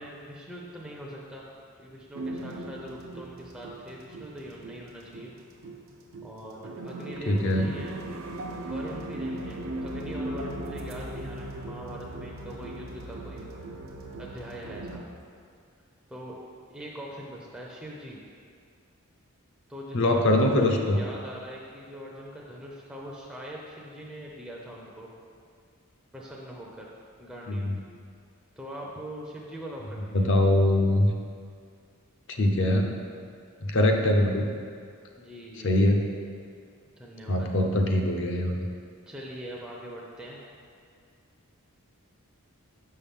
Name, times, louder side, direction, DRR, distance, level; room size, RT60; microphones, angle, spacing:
voice 1, 0.0-1.5 1.8-5.3 6.2-8.0 8.6-13.5 14.2-15.0 16.1-16.3 16.7-18.2 19.7-25.1 26.1-26.9 27.2-27.7 28.6-30.3 35.2-35.9 37.0-37.5 39.1-40.4, equal, 5° right, -4 dB, 0.5 m, -42 dB
sound 1, 2.1-15.0, right 1 dB, 60° right, 0.5 m, -38 dB
voice 2, 7.3-7.7 19.9-21.0 27.5-27.7 30.1-31.1 32.3-33.0 33.6-34.5 35.6-36.1 37.3-38.6, left 1 dB, 55° left, 2 dB, 0.6 m, -23 dB
6.5 x 5.5 x 3.6 m, 2.2 s
head